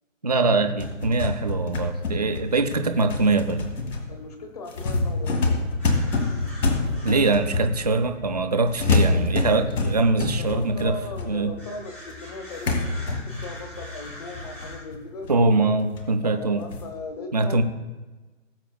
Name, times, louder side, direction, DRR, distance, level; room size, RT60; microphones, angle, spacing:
voice 1, 0.2-3.6 7.0-11.0 11.3-11.5 15.3-16.6 17.3-17.6, right 3 dB, 30° right, 7 dB, 0.5 m, -23 dB
sound 1, 0.6-8.2 8.8-11.7 12.1-12.2 12.7-15.5 16.0-16.1 16.7-16.9, left 3 dB, 70° left, 2.1 m, -27 dB
voice 2, 4.1-5.6 10.4-15.3 16.2-17.6, left 3 dB, 30° left, 6 dB, 1.2 m, -38 dB
sound 2, 5.8-14.8, left 1 dB, 10° left, 0.8 m, -44 dB
19.0 x 8.0 x 2.3 m, 1.2 s
hypercardioid pair, 170°, 39 cm